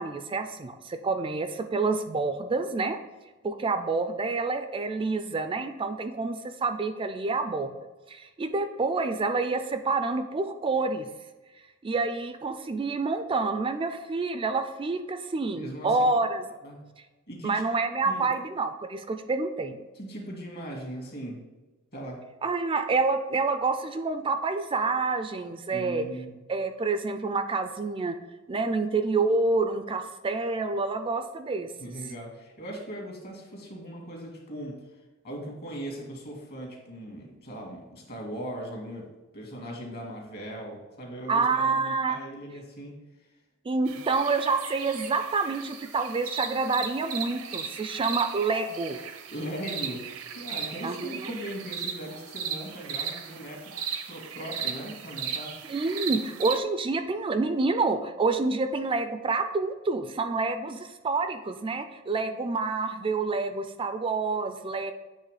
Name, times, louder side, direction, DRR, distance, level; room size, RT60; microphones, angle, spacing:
voice 1, 0.0-3.0 3.4-7.7 8.1-11.1 11.8-16.4 17.4-19.8 22.4-26.1 26.5-28.2 28.5-31.7 41.3-42.2 43.7-49.0 50.8-51.3 55.7-64.9, right 3 dB, 25° right, 9 dB, 0.3 m, -28 dB
voice 2, 15.5-16.1 16.6-16.9 17.3-17.6 18.0-18.3 20.0-21.4 21.9-22.3 25.7-26.4 31.8-34.9 35.2-43.0 43.9-44.0 49.3-50.1 50.3-53.8 54.1-55.6, right 1 dB, 50° left, 0 dB, 1.8 m, -39 dB
sound 1, 43.9-56.6, right 7 dB, 85° right, 0.7 m, -37 dB
8.1 x 3.5 x 4.8 m, 1.1 s
head